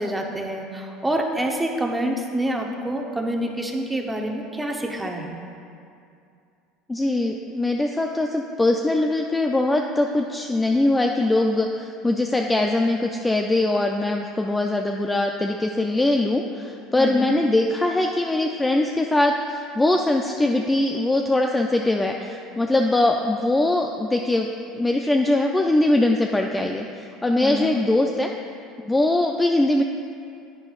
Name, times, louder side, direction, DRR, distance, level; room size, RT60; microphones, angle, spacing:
voice 1, 0.0-5.4 17.0-17.3 27.4-27.7, right 1 dB, 10° right, 1 dB, 0.9 m, -27 dB
voice 2, 6.9-28.3 28.8-29.8, left 2 dB, 10° left, 3 dB, 0.4 m, -22 dB
10.5 x 9.3 x 2.4 m, 2.5 s
supercardioid pair, 120°, 0 cm